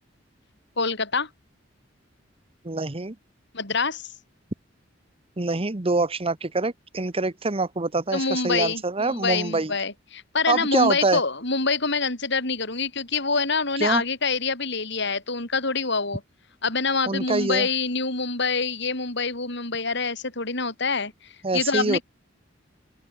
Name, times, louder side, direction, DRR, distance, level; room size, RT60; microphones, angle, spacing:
voice 1, 0.8-1.3 3.5-4.1 8.1-16.2 16.6-22.0, left 4 dB, 65° left, 6.9 m, -26 dB
voice 2, 2.6-3.1 5.4-9.7 10.5-11.2 13.8-14.0 17.1-17.7 21.4-22.0, right 3 dB, 30° right, 1.1 m, -25 dB
open air
head